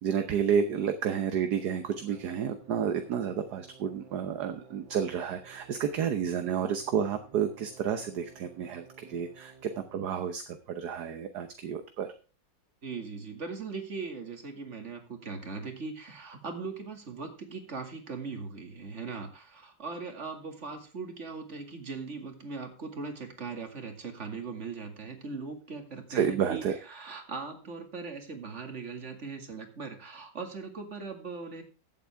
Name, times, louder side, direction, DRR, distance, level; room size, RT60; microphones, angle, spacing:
voice 1, 0.0-12.1 26.1-26.7, right 8 dB, 60° right, 8 dB, 1.4 m, -30 dB
sound 1, 0.5-10.0, right 5 dB, 80° right, 2.2 m, -55 dB
voice 2, 12.8-31.6, right 4 dB, 40° right, 5 dB, 2.4 m, -39 dB
15.0 x 8.4 x 3.5 m, 0.35 s
omnidirectional pair, 2.1 m